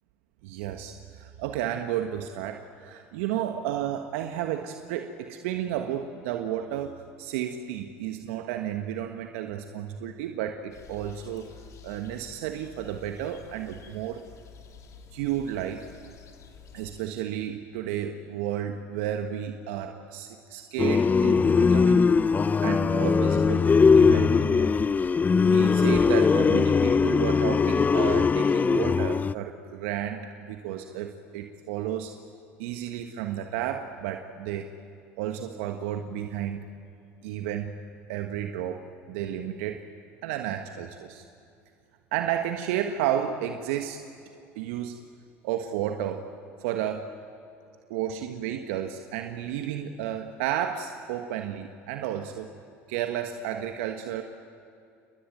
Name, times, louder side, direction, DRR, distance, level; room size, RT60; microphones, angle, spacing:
voice 1, 0.4-11.5 11.8-14.2 15.1-15.9 16.7-22.0 22.6-24.7 25.5-32.2 32.6-34.7 35.2-36.7 37.2-37.7 38.1-39.8 40.2-41.2 42.1-44.0 44.5-45.0 45.4-46.3 46.6-47.1 47.9-52.5 52.9-54.2, right 10 dB, 70° right, 5 dB, 1.4 m, -32 dB
sound 1, 10.7-17.0, left 7 dB, 45° left, 2.8 m, -50 dB
sound 2, 20.8-29.3, left 5 dB, 25° left, 0.5 m, -21 dB
29.5 x 20.5 x 9.2 m, 2.6 s
hypercardioid pair, 70°, 7 cm